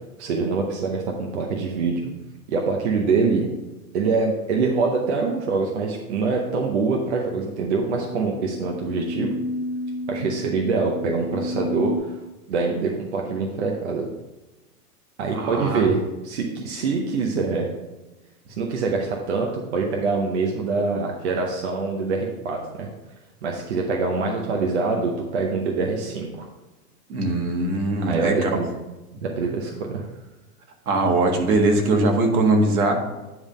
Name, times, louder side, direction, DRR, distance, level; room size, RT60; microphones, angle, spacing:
voice 1, 0.2-1.9 2.5-3.5 3.9-9.3 10.1-12.2 12.5-14.1 15.2-17.7 18.6-22.9 23.4-26.5 28.0-28.7 29.2-30.0, right 4 dB, 45° right, 0 dB, 0.8 m, -24 dB
sound 1, 7.6-12.0, left 1 dB, 5° left, 0.6 m, -31 dB
voice 2, 15.3-15.9 27.1-28.5 30.8-32.9, right 2 dB, 65° right, 2 dB, 1.7 m, -21 dB
9.5 x 3.6 x 5.2 m, 1.1 s
supercardioid pair, 175°, 47 cm